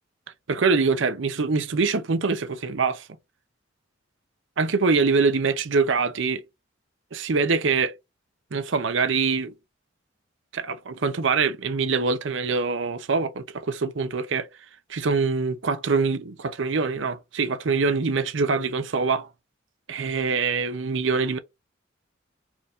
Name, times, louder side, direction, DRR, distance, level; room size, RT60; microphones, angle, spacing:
voice 1, 0.5-3.1 4.6-6.4 7.1-7.9 8.5-9.5 10.5-14.5 14.9-19.3 19.9-21.4, right 4 dB, 65° right, 0.6 m, -24 dB
4.5 x 2.5 x 3.6 m
head